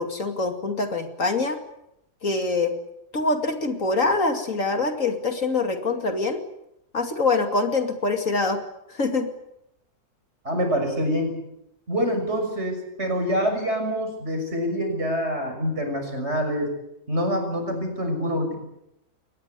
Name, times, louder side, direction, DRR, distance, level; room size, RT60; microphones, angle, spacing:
voice 1, 0.0-1.6 2.2-2.7 3.1-6.4 6.9-8.6 8.9-9.3, left 3 dB, 55° left, 5 dB, 2.9 m, -24 dB
voice 2, 10.4-11.3 11.9-16.7 17.1-18.6, equal, 45° right, 5 dB, 6.8 m, -26 dB
22.5 x 20.5 x 9.6 m, 0.83 s
omnidirectional pair, 1.6 m